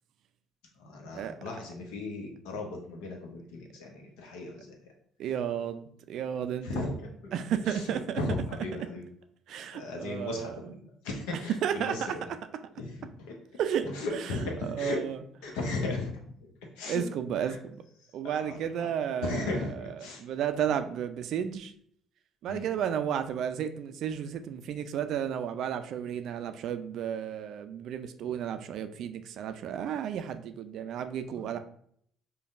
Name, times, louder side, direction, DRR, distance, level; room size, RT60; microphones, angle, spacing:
voice 1, 0.8-4.8 6.6-7.1 7.7-7.8 8.2-9.1 9.7-12.3 12.8-13.3 13.8-15.0 15.4-16.5 16.8-17.0 17.4-17.6 18.3-18.6 19.2-20.2 22.5-22.7 31.3-31.5, left 2 dB, 75° left, 1 dB, 0.7 m, -36 dB
voice 2, 5.2-6.9 7.3-8.2 9.5-10.7 11.6-12.2 13.6-15.2 15.4-15.6 16.9-17.8 18.1-21.7 22.4-31.6, right 9 dB, 65° right, 9 dB, 0.3 m, -33 dB
5.1 x 2.2 x 2.5 m, 0.66 s
hypercardioid pair, 55°, 0 cm